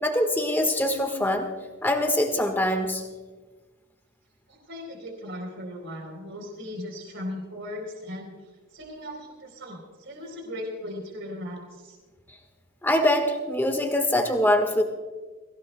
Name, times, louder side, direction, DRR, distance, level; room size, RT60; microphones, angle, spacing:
voice 1, 0.0-1.5 1.8-3.1 12.8-14.8, left 1 dB, 10° left, 5 dB, 1.4 m, -23 dB
voice 2, 4.5-8.3 8.7-12.0, left 1 dB, 60° right, 1 dB, 3.7 m, -37 dB
23.5 x 17.0 x 2.3 m, 1.4 s
head